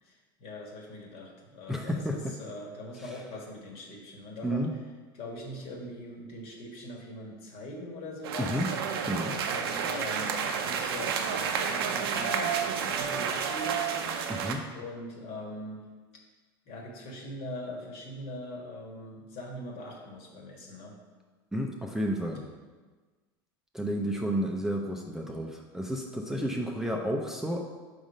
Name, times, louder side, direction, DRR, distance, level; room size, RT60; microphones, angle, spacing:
voice 1, 0.0-4.7 5.1-8.7 9.5-14.1 14.7-15.8 16.7-20.9, left 1 dB, 50° left, 0 dB, 1.5 m, -42 dB
voice 2, 1.7-2.2 4.4-4.7 8.4-8.7 9.0-9.3 14.3-14.6 21.5-22.4 23.7-27.6, equal, 5° right, 0 dB, 0.5 m, -31 dB
sound 1, 8.2-14.5, right 6 dB, 80° right, 0.6 m, -30 dB
5.1 x 3.7 x 5.2 m, 1.3 s
hypercardioid pair, 95°, 12 cm